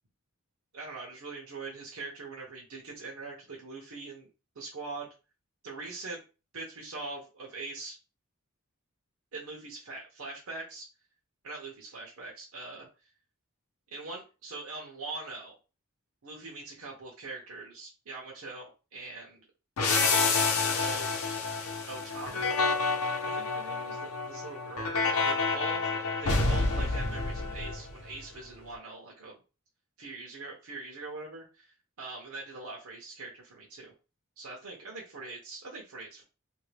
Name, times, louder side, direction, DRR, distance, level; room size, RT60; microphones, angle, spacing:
voice 1, 0.7-4.3 4.6-5.1 5.6-6.2 6.5-8.0 9.3-10.9 11.4-12.9 13.9-15.6 16.2-19.5 19.9-21.2 21.8-22.5 23.2-29.3 30.0-33.9 34.4-36.2, right 3 dB, 85° right, -2 dB, 0.8 m, -42 dB
sound 1, 19.8-28.2, left 4 dB, 90° left, 0.7 m, -28 dB
2.9 x 2.7 x 3.3 m, 0.32 s
head